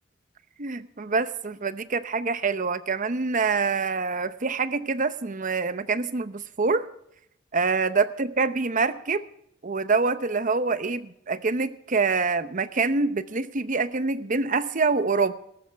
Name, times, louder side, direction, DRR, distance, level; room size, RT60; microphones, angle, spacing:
voice 1, 0.6-6.9 7.5-9.3 9.6-15.3, right 4 dB, 40° right, 13 dB, 0.8 m, -25 dB
18.5 x 14.0 x 3.4 m, 0.74 s
head